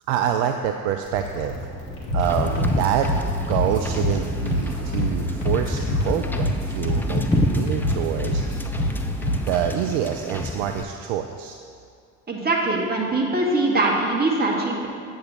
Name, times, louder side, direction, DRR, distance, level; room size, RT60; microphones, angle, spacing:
voice 1, 0.1-1.7 2.1-3.1 3.4-8.7 9.4-11.6, right 10 dB, 60° right, 6 dB, 0.5 m, -26 dB
sound 1, 1.0-6.6, left 1 dB, 55° left, 2.0 m, -36 dB
sound 2, 2.1-9.7, left 1 dB, 80° left, 1.8 m, -26 dB
Wind / Boat Water vehicle, 2.2-10.8, left 1 dB, 5° left, 0.4 m, -30 dB
voice 2, 12.3-14.9, right 2 dB, 25° right, -2 dB, 1.6 m, -22 dB
7.9 x 3.8 x 6.5 m, 2.2 s
figure-of-eight pair, 55°, 41 cm